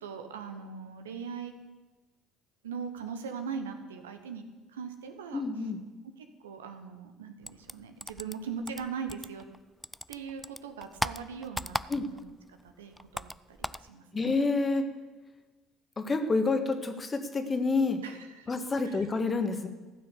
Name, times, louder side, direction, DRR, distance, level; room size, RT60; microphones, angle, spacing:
voice 1, 0.0-1.5 2.6-5.4 6.2-9.5 10.1-14.0 18.0-18.5 18.8-19.1, right 6 dB, 80° right, 7 dB, 1.1 m, -40 dB
voice 2, 5.3-5.8 11.9-12.0 14.1-14.8 16.0-18.0 18.5-19.7, left 3 dB, 30° left, 7 dB, 1.6 m, -28 dB
sound 1, 7.4-9.6 9.8-12.3 12.6-13.9, equal, 5° left, 0.4 m, -37 dB
15.0 x 6.3 x 8.3 m, 1.2 s
figure-of-eight pair, 60°, 0 cm